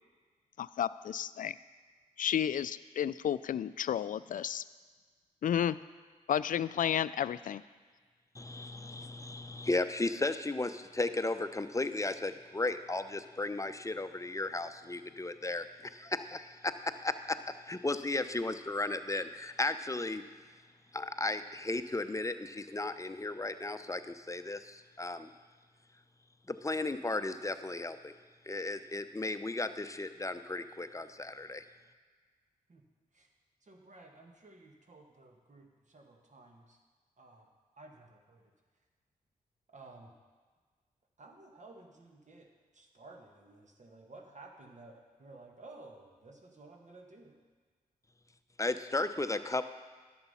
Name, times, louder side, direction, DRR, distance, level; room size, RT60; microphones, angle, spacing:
voice 1, 0.6-1.6 2.2-4.6 5.4-5.8 6.3-7.6, left 9 dB, 60° left, 16 dB, 0.4 m, -32 dB
voice 2, 8.3-17.4 17.7-20.2 20.9-25.3 26.5-28.1 28.5-31.7 48.6-49.6, left 2 dB, 20° left, 10 dB, 0.7 m, -35 dB
voice 3, 33.6-36.8 37.2-37.5 37.8-38.5 39.7-40.1 41.2-42.5 42.7-47.4, right 2 dB, 50° right, 2 dB, 1.8 m, -54 dB
11.0 x 7.2 x 5.6 m, 1.5 s
supercardioid pair, 40°, 16 cm